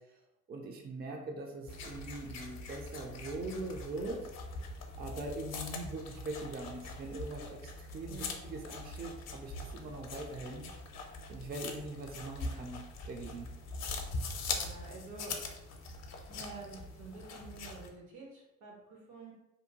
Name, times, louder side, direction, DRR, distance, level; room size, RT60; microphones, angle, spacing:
voice 1, 0.5-4.3 4.7-10.7 11.3-13.5, right 2 dB, 35° right, 2 dB, 0.4 m, -42 dB
sound 1, 1.7-17.9, left 3 dB, 60° left, 0.5 m, -42 dB
voice 2, 8.0-8.4 14.2-15.4 16.3-19.3, right 3 dB, 75° right, -1 dB, 0.9 m, -49 dB
2.7 x 2.1 x 2.7 m, 0.92 s
cardioid pair, 90°, 30 cm